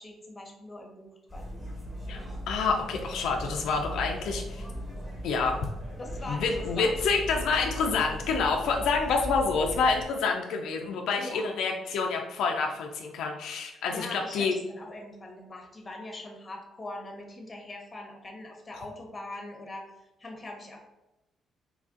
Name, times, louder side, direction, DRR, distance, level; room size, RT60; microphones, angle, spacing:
voice 1, 0.0-1.5 6.0-6.5 6.7-7.0 11.2-11.5 13.9-19.9 20.2-20.8, left 2 dB, 25° left, 1 dB, 0.9 m, -42 dB
sound 1, 1.3-10.0, equal, 20° right, 1.2 m, -38 dB
voice 2, 2.5-4.7 5.2-5.6 6.3-14.5, left 4 dB, 80° left, 2 dB, 0.4 m, -28 dB
3.2 x 2.5 x 3.6 m, 0.98 s
cardioid pair, 90°, 0 cm